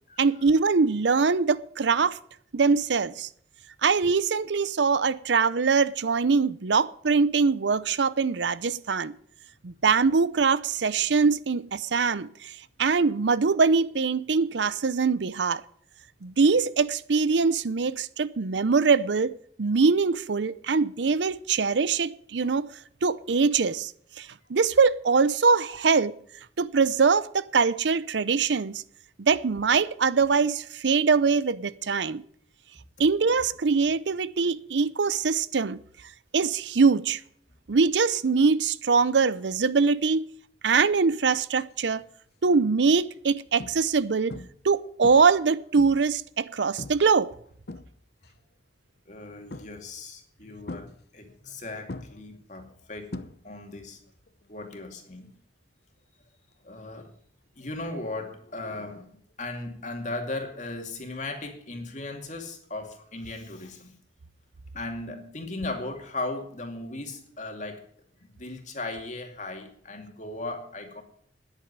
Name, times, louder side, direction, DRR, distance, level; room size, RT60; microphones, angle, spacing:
voice 1, 0.2-2.2 2.5-3.3 3.8-9.1 9.6-15.6 16.2-22.7 23.0-23.9 24.2-26.1 26.6-28.8 29.2-32.2 33.0-35.8 36.3-37.2 37.7-40.3 40.6-42.0 42.4-44.4 44.6-47.3, right 5 dB, 80° right, 0.6 m, -23 dB
sound 1, 42.0-42.3 42.9-43.0 43.6-44.0 44.3-44.7 45.0-46.2 46.8-47.1 47.5-48.3 49.5-50.0 50.7-51.6 51.9-53.8 54.0-54.4 56.5-56.6, left 2 dB, 60° left, 0.8 m, -41 dB
voice 2, 49.1-53.1 53.4-54.0 54.5-55.3 56.6-57.1 57.6-63.9 64.7-67.8 68.3-71.0, left 2 dB, 40° left, 2.4 m, -37 dB
10.0 x 8.2 x 9.5 m
head